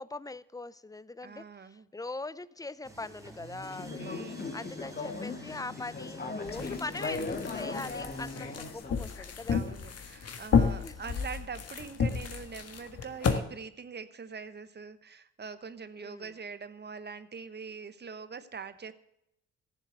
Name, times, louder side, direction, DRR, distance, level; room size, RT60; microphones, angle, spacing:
voice 1, 0.0-4.2 4.5-9.7 10.8-11.0 16.0-16.3, left 3 dB, 10° left, 18 dB, 0.6 m, -41 dB
voice 2, 1.2-1.9 4.0-4.8 9.5-18.9, right 5 dB, 35° right, 13 dB, 1.2 m, -43 dB
sound 1, 2.8-8.7, equal, 10° right, 2.7 m, -49 dB
Conversation / Chatter, 3.6-9.0, left 3 dB, 30° left, 2.0 m, -38 dB
sound 2, 6.5-13.4, left 6 dB, 55° left, 1.7 m, -32 dB
15.0 x 7.4 x 8.0 m, 0.80 s
cardioid pair, 90°, 30 cm